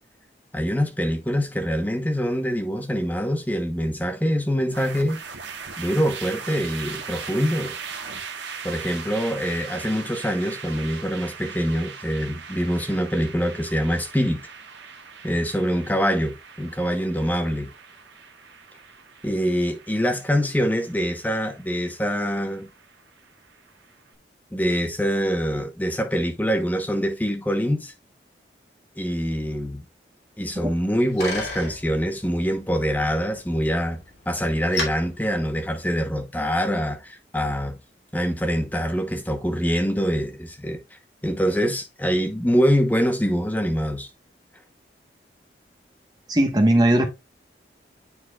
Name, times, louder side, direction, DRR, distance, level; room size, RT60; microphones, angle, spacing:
voice 1, 0.5-5.2 5.8-7.8 8.6-14.4 15.2-17.7 19.2-22.7 24.5-27.9 29.0-29.8 30.4-34.0 34.3-37.8 38.1-40.8 41.2-44.1, equal, 10° left, 0.9 m, -24 dB
sound 1, 4.7-23.9, right 6 dB, 85° right, 1.3 m, -39 dB
Bicycle, 30.5-36.2, left 3 dB, 70° left, 2.5 m, -37 dB
voice 2, 46.3-47.1, right 1 dB, 25° right, 1.1 m, -18 dB
9.8 x 4.3 x 2.3 m
head